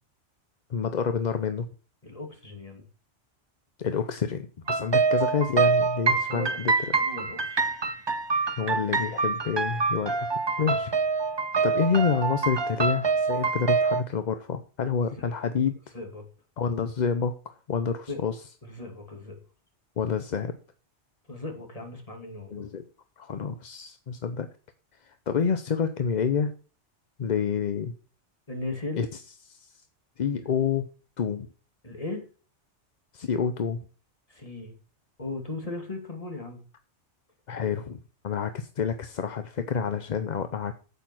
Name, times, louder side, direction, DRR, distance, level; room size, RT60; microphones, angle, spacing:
voice 1, 0.7-1.7 3.8-6.7 8.6-10.3 10.6-10.9 11.6-15.8 16.6-18.4 20.0-20.6 22.5-22.8 23.2-24.5 25.0-26.5 27.2-27.9 29.0-29.1 29.5-29.6 30.2-30.9 31.2-31.5 33.1-33.8 37.5-38.0 38.2-40.7, left 6 dB, 45° left, 10 dB, 0.7 m, -28 dB
voice 2, 2.0-2.8 6.1-7.6 10.6-10.8 15.1-15.5 15.9-16.2 18.1-18.2 18.6-19.4 21.3-22.7 28.5-29.0 31.8-32.3 34.3-34.8 35.2-36.6, left 2 dB, 30° left, 4 dB, 2.5 m, -37 dB
sound 1, 4.7-14.0, right 4 dB, 30° right, 0.6 m, -26 dB
8.6 x 8.2 x 6.1 m, 0.38 s
omnidirectional pair, 1.2 m